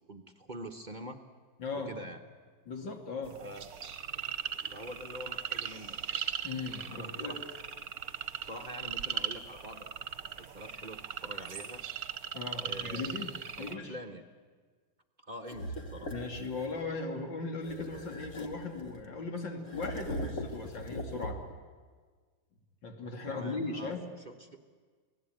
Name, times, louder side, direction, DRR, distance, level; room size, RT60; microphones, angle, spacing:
voice 1, 0.1-1.2 1.7-2.2 3.4-3.7 4.7-6.0 6.9-7.4 8.4-9.9 10.4-11.8 12.6-13.2 13.6-14.2 15.2-16.1 23.2-23.9 24.2-24.5, equal, 30° right, 6 dB, 1.1 m, -45 dB
voice 2, 1.6-1.9 2.7-3.4 4.2-4.3 6.4-7.3 12.3-13.3 13.6-13.9 16.1-21.5 22.8-24.0, left 3 dB, 90° left, 3 dB, 3.3 m, -38 dB
sound 1, 3.2-13.7, right 8 dB, 60° right, 1.4 m, -39 dB
sound 2, 15.5-16.8 17.6-19.1 19.6-21.6, equal, 45° left, 2.0 m, -40 dB
28.0 x 18.0 x 9.2 m, 1.5 s
omnidirectional pair, 1.9 m